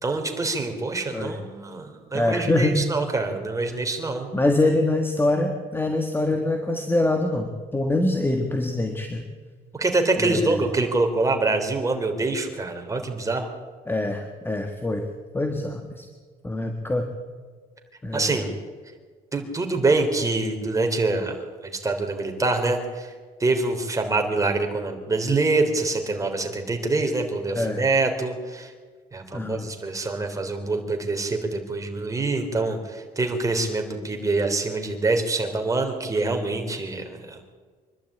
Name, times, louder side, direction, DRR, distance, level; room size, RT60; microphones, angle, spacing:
voice 1, 0.0-4.3 9.7-13.5 18.1-18.5 19.3-23.1 23.4-28.7 29.1-37.4, right 3 dB, 20° right, 4 dB, 3.5 m, -25 dB
voice 2, 2.1-2.8 3.7-3.8 4.3-9.2 10.2-10.7 13.9-15.1 15.3-16.1 16.4-17.1 18.0-18.4 27.5-27.8 29.3-29.7, left 2 dB, 10° left, 5 dB, 1.7 m, -24 dB
25.0 x 12.0 x 8.9 m, 1.5 s
cardioid pair, 110°, 17 cm